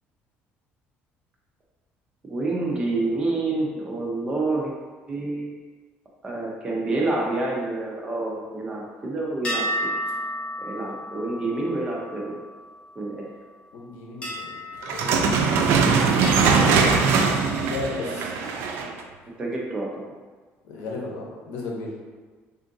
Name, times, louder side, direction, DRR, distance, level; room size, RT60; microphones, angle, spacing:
voice 1, 2.3-4.7 5.1-5.5 6.2-9.9 10.6-12.4 13.0-13.3 19.4-19.9, right 2 dB, 20° right, -3 dB, 0.6 m, -28 dB
sound 1, 9.4-13.1 14.2-15.8 16.2-17.9, equal, 25° left, 0.8 m, -33 dB
voice 2, 13.7-14.6 14.9-16.2 16.7-18.3 20.6-21.9, left 3 dB, 85° left, -2 dB, 0.7 m, -35 dB
sound 2, 14.8-19.0, right 5 dB, 75° right, 0.3 m, -21 dB
3.6 x 2.5 x 2.6 m, 1.4 s
cardioid pair, 145°, 4 cm